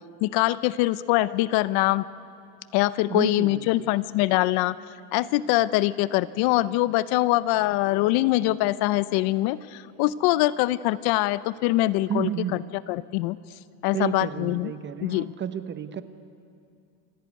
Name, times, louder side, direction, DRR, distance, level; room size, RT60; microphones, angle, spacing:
voice 1, 0.2-2.0 2.7-4.7 5.1-12.3 12.9-13.4 13.8-14.7 15.0-15.3, left 17 dB, 50° left, 17 dB, 0.7 m, -23 dB
voice 2, 3.1-3.9 12.1-12.7 13.9-16.0, right 8 dB, 25° right, 12 dB, 0.8 m, -31 dB
28.0 x 14.0 x 9.4 m, 2.4 s
supercardioid pair, 135°, 48 cm